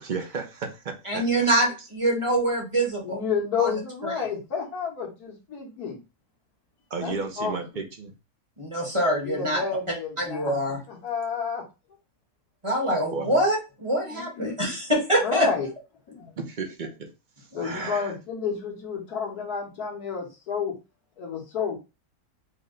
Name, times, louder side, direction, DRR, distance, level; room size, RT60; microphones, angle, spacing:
voice 1, 0.0-1.6 6.9-8.1 13.1-13.5 16.4-17.1 17.4-18.1, right 4 dB, 50° right, 4 dB, 0.6 m, -34 dB
voice 2, 1.0-3.2 3.6-3.7 4.0-4.3 8.6-9.6 10.2-10.8 12.6-15.5 17.5-17.9, right 1 dB, 20° right, -1 dB, 1.1 m, -25 dB
voice 3, 3.0-6.0 7.0-7.5 9.2-11.6 14.0-14.7 15.2-15.7 16.1-16.3 17.5-20.7 21.2-21.8, left 6 dB, 85° left, -1 dB, 1.8 m, -30 dB
4.6 x 2.1 x 3.7 m, 0.28 s
omnidirectional pair, 1.6 m